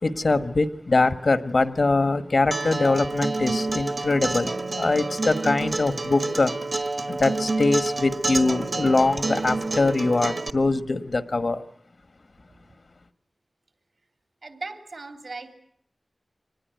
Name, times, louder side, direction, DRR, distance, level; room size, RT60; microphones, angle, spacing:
voice 1, 0.0-6.5 7.1-11.6, left 3 dB, 65° left, 1.3 m, -23 dB
Acoustic guitar, 2.5-10.5, right 3 dB, 65° right, 1.3 m, -28 dB
voice 2, 14.4-15.6, right 3 dB, 85° right, 3.3 m, -37 dB
24.5 x 20.0 x 9.2 m
wide cardioid pair, 70°, 0 cm